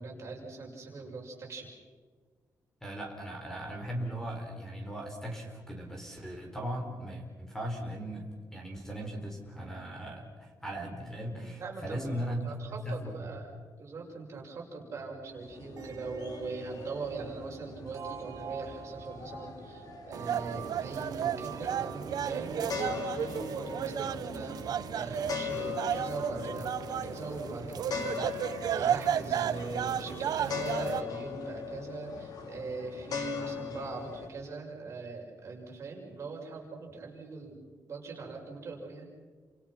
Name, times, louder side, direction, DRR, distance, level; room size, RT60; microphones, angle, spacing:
voice 1, 0.0-1.7 11.6-13.5 13.8-39.1, right 3 dB, 45° right, -1 dB, 6.5 m, -41 dB
voice 2, 2.8-13.3 33.1-33.2, right 1 dB, 5° left, 1 dB, 4.7 m, -38 dB
sound 1, 15.3-34.3, left 7 dB, 70° left, 3.4 m, -41 dB
sound 2, 15.8-28.2, right 6 dB, 60° right, 2.5 m, -46 dB
sound 3, 20.1-31.0, right 9 dB, 80° right, 1.0 m, -33 dB
30.0 x 27.0 x 6.1 m, 1.5 s
wide cardioid pair, 160°, 7 cm